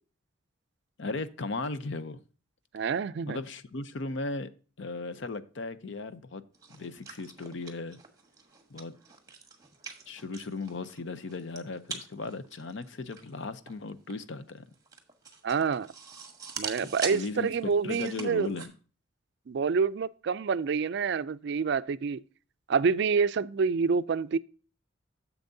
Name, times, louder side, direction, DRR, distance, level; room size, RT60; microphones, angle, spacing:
voice 1, 1.0-2.2 3.3-4.5 4.8-6.4 6.7-8.0 8.7-8.9 10.1-14.7 16.8-18.7, left 3 dB, 60° left, 0.6 m, -37 dB
voice 2, 2.7-3.4 15.4-15.9 16.6-18.5 19.5-22.2 22.7-24.4, right 5 dB, 55° right, 0.4 m, -27 dB
sound 1, 6.5-18.7, right 5 dB, 20° right, 1.2 m, -43 dB
10.5 x 7.2 x 2.7 m
head